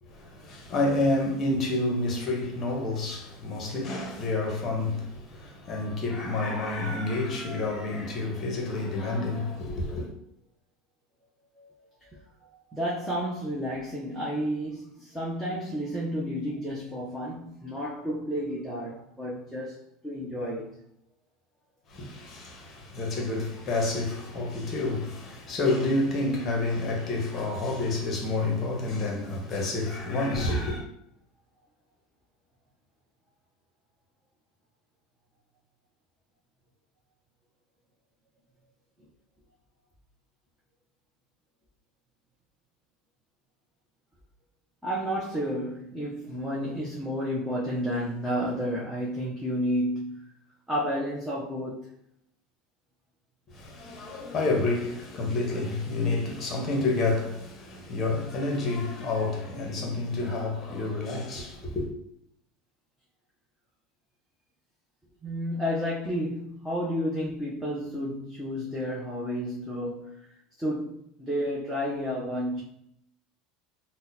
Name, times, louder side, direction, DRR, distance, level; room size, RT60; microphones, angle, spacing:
voice 1, 0.0-10.1 21.9-30.8 53.5-61.9, left 2 dB, 30° left, 0.8 m, -29 dB
voice 2, 12.7-20.7 44.8-50.3 50.7-51.9 65.2-70.2 70.6-72.6, equal, 5° right, 0.5 m, -31 dB
2.7 x 2.0 x 3.9 m
supercardioid pair, 155°, 0 cm